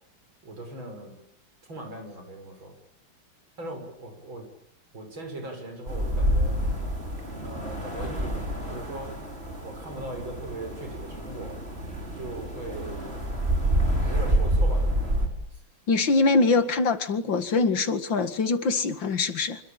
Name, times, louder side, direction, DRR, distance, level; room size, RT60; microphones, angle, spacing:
voice 1, 0.4-1.2 1.7-2.8 3.6-4.5 4.9-6.6 7.4-9.3 9.6-11.6 12.2-13.1 13.9-15.6, right 1 dB, 90° right, 5 dB, 7.8 m, -39 dB
sound 1, 5.9-15.3, right 1 dB, 30° right, 6.3 m, -28 dB
voice 2, 15.9-19.6, left 3 dB, 75° left, 10 dB, 2.7 m, -23 dB
26.5 x 25.5 x 8.9 m, 0.70 s
omnidirectional pair, 2.1 m